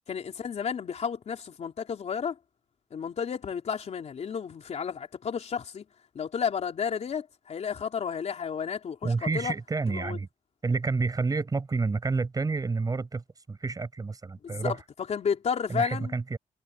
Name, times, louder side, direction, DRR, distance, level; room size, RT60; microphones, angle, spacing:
voice 1, 0.1-2.4 2.9-5.8 6.1-9.5 9.9-10.2 14.4-14.8 15.1-16.1, left 7 dB, 60° left, 3.8 m, -32 dB
voice 2, 9.0-10.3 10.6-14.8 15.7-16.4, right 4 dB, 30° right, 7.0 m, -29 dB
wide cardioid pair, 150°, 13 cm